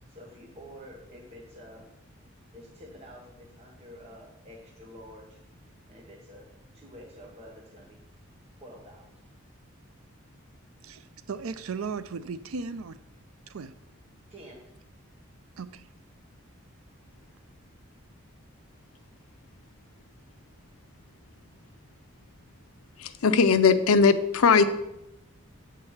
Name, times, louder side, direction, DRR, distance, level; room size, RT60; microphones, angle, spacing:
voice 1, 0.1-1.9 2.5-6.5 6.7-8.0 8.6-9.1 14.3-14.6, equal, 30° right, -2 dB, 1.1 m, -49 dB
voice 2, 10.8-13.0 13.5-13.7 15.6-15.9, right 5 dB, 75° right, 13 dB, 0.5 m, -36 dB
voice 3, 23.0-24.6, left 5 dB, 80° left, 11 dB, 0.6 m, -20 dB
8.9 x 4.7 x 7.2 m, 0.90 s
head